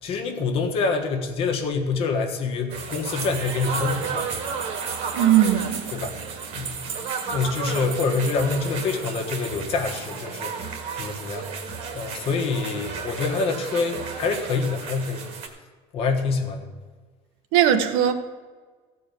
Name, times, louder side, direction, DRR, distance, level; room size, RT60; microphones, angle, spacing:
voice 1, 0.0-4.3 5.9-6.1 6.5-6.8 7.3-11.5 11.9-15.3 15.9-16.7, left 4 dB, 40° left, 4 dB, 1.4 m, -26 dB
sound 1, 2.7-15.5, right 5 dB, 45° right, 1.7 m, -32 dB
voice 2, 5.1-5.9 17.5-18.1, right 10 dB, 80° right, 7 dB, 1.2 m, -19 dB
15.0 x 5.0 x 8.3 m, 1.4 s
cardioid pair, 170°, 14 cm